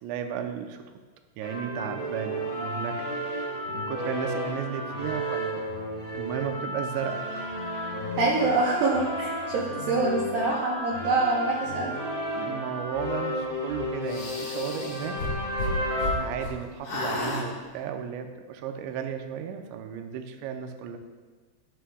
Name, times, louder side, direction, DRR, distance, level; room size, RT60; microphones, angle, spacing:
voice 1, 0.0-0.8 1.4-3.0 3.3-3.4 3.7-5.8 6.1-7.5 12.3-15.2 16.2-21.0, right 8 dB, 90° right, 5 dB, 2.9 m, -34 dB
sound 1, 1.4-16.1, equal, 25° left, 2.0 m, -32 dB
voice 2, 8.2-12.0, right 3 dB, 70° right, -4 dB, 2.4 m, -25 dB
sound 2, 14.1-16.6 16.8-17.5, left 2 dB, 60° left, 1.6 m, -32 dB
12.5 x 11.0 x 2.3 m, 1.4 s
omnidirectional pair, 5.1 m